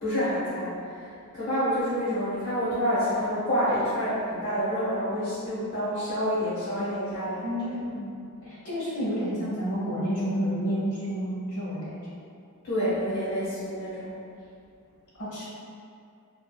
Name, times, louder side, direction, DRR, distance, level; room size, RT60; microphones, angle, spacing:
voice 1, 0.0-7.9 12.6-14.2, equal, 55° left, -12 dB, 0.7 m, -28 dB
voice 2, 7.4-8.1 8.4-12.1 15.2-15.5, equal, 75° left, -7 dB, 1.0 m, -30 dB
2.7 x 2.4 x 2.2 m, 2.5 s
head